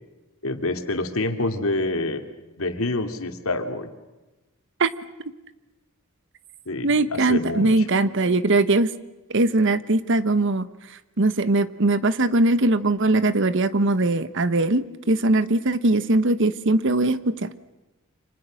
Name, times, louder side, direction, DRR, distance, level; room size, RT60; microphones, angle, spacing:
voice 1, 0.4-2.2 2.6-3.9 6.7-7.9, left 2 dB, 90° left, 6 dB, 2.6 m, -27 dB
voice 2, 6.8-8.9 9.3-10.7 11.2-17.7, right 2 dB, 60° right, 14 dB, 1.2 m, -21 dB
29.5 x 26.5 x 6.4 m, 1.1 s
head